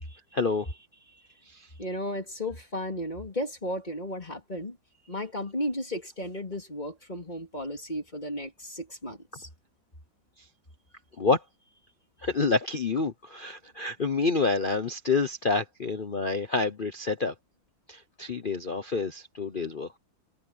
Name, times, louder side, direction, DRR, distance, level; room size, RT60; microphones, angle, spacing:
voice 1, 0.1-0.8 1.5-1.7 11.2-11.4 12.2-17.3 17.9-20.0, left 4 dB, 55° left, 0.5 m, -28 dB
voice 2, 1.8-4.8 5.1-9.5, left 1 dB, 20° left, 3.8 m, -34 dB
omnidirectional pair, 2.2 m